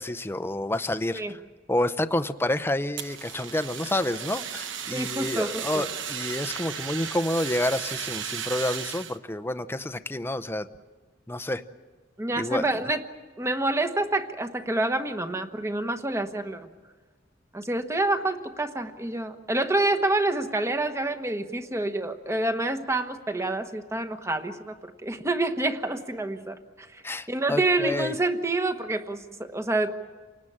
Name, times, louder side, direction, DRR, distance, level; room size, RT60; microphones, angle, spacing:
voice 1, 0.0-1.4 1.7-10.7 11.3-11.6 12.4-12.6 27.0-28.1, left 1 dB, 10° left, 11 dB, 0.7 m, -29 dB
Fire, 3.0-9.2, right 8 dB, 75° right, 1.0 m, -35 dB
voice 2, 4.9-5.8 12.2-13.0 13.4-16.7 17.5-27.0 27.3-29.9, right 2 dB, 15° right, 8 dB, 1.2 m, -27 dB
28.5 x 19.0 x 8.8 m, 1.4 s
head